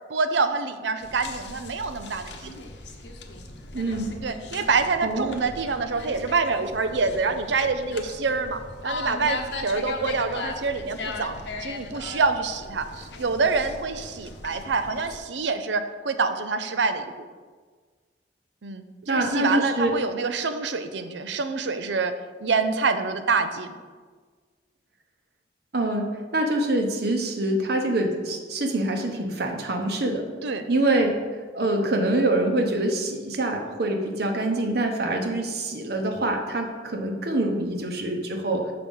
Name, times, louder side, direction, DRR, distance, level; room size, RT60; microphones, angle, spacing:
voice 1, 0.1-2.5 4.2-17.3 18.6-22.1 22.4-23.8 30.4-30.7, right 4 dB, 85° right, 9 dB, 0.6 m, -26 dB
sound 1, 1.0-15.2, left 3 dB, 80° left, 0.9 m, -38 dB
voice 2, 3.7-4.1 5.0-5.4 19.1-19.9 25.7-30.3 30.7-31.1 31.5-38.7, right 1 dB, 60° right, 3 dB, 1.0 m, -25 dB
6.7 x 6.0 x 5.4 m, 1.5 s
head